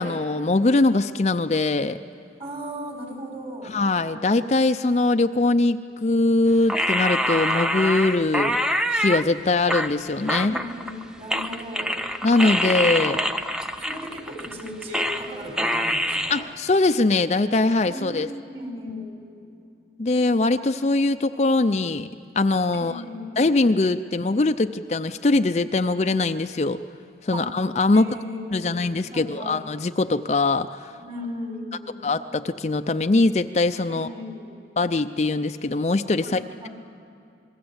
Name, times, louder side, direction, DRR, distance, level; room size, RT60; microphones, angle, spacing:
voice 1, 0.0-2.0 3.6-8.6 8.9-10.5 12.2-13.2 16.3-18.3 20.0-22.1 22.4-23.0 23.4-26.8 27.2-28.1 28.5-30.9 32.0-34.1 34.8-36.7, left 2 dB, 40° left, 9 dB, 0.5 m, -22 dB
voice 2, 2.4-3.8 10.4-12.0 12.6-13.3 13.8-16.5 17.8-19.5 22.7-23.4 27.3-27.5 27.9-29.6 31.0-32.1 33.9-34.6 36.2-36.7, equal, 35° right, 3 dB, 3.9 m, -37 dB
sound 1, 6.7-9.2 9.7-11.0 11.3-15.3 15.6-16.4, equal, 5° right, 0.6 m, -25 dB
27.5 x 21.0 x 8.0 m, 2.6 s
head